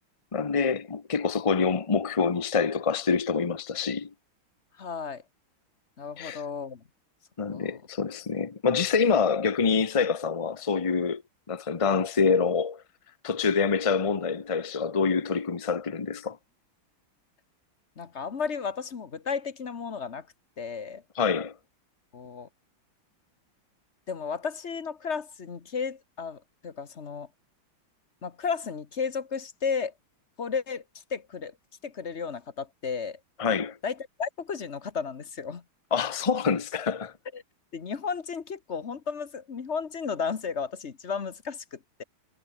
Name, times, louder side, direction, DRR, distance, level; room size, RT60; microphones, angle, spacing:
voice 1, 0.3-4.1 6.2-6.4 7.4-11.2 11.5-12.8 13.2-16.4 21.2-21.5 33.4-33.8 35.9-37.1, left 5 dB, 55° left, 0.3 m, -26 dB
voice 2, 4.8-5.2 6.0-6.8 7.5-7.8 18.0-20.3 20.6-21.0 22.1-22.5 24.1-27.3 28.2-29.9 30.4-30.8 31.1-31.5 31.8-33.2 33.8-35.6 37.3-37.4 37.7-42.0, left 5 dB, 40° left, 1.4 m, -33 dB
omnidirectional pair, 2.3 m